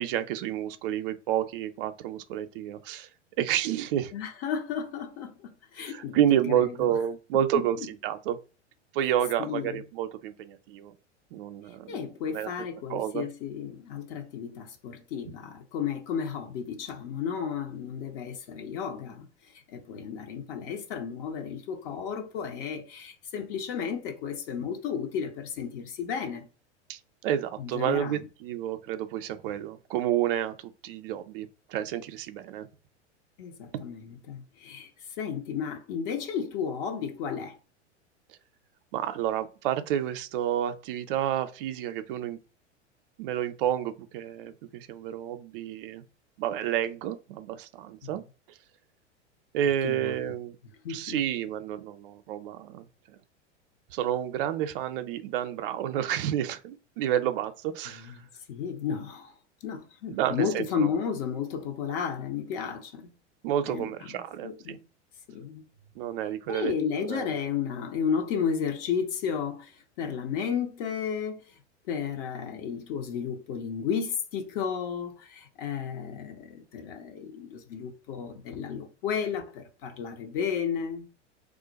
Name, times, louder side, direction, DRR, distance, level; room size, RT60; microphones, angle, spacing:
voice 1, 0.0-3.1 3.4-4.1 5.8-8.4 8.9-10.9 11.3-12.0 12.3-12.5 12.9-13.2 26.9-32.7 33.7-33.8 38.9-42.4 43.2-46.0 46.4-48.2 48.5-48.6 49.5-50.6 50.9-53.2 53.9-58.2 60.1-60.9 63.4-64.8 66.0-66.7 67.1-67.3, right 10 dB, 50° right, 0.5 m, -30 dB
voice 2, 4.1-6.2 6.5-7.0 7.5-7.9 9.4-9.8 11.9-19.3 19.7-26.5 27.6-28.2 33.4-34.9 35.2-37.6 48.0-48.1 49.8-50.1 50.8-51.2 57.8-59.3 59.6-63.1 63.7-64.8 65.3-65.6 66.5-71.6 71.9-81.1, left 7 dB, 50° left, 0.8 m, -33 dB
2.4 x 2.2 x 3.9 m
figure-of-eight pair, 90°, 35 cm